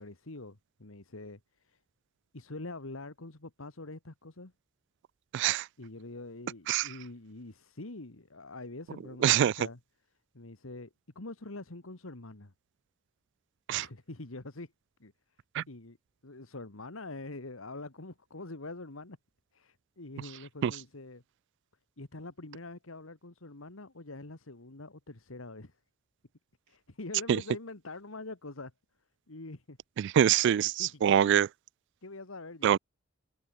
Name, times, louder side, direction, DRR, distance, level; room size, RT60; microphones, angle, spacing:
voice 1, 0.0-1.8 2.3-4.5 5.8-9.8 10.3-12.5 13.7-14.7 15.0-15.1 15.7-16.0 16.2-19.2 19.5-21.2 22.0-25.8 26.7-28.7 29.3-29.8 30.8-31.2 32.0-32.8, left 2 dB, 90° left, 1.9 m, -45 dB
voice 2, 5.3-5.7 6.7-6.9 9.2-9.5 13.7-13.9 15.5-15.6 20.6-20.7 27.3-27.4 30.0-31.5 32.6-32.8, right 9 dB, 60° right, 0.3 m, -24 dB
head